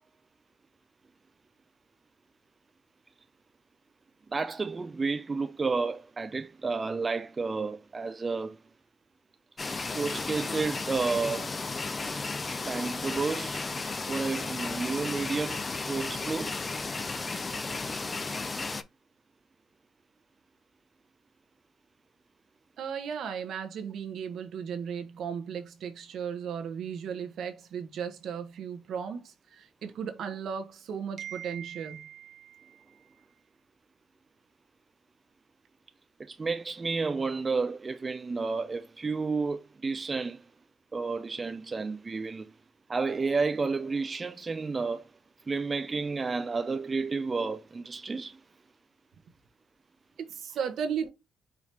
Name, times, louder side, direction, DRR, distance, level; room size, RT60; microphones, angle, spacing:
voice 1, 4.3-8.6 10.0-11.5 12.7-13.7 14.1-16.5 36.2-40.4 40.9-42.5 42.9-45.0 45.5-48.4, right 4 dB, 30° right, 0.4 m, -31 dB
sound 1, 9.6-18.8, left 3 dB, 30° left, 0.5 m, -34 dB
voice 2, 22.8-33.1 50.2-51.1, right 7 dB, 70° right, 1.0 m, -36 dB
4.9 x 2.7 x 3.3 m
cardioid pair, 90°, 0 cm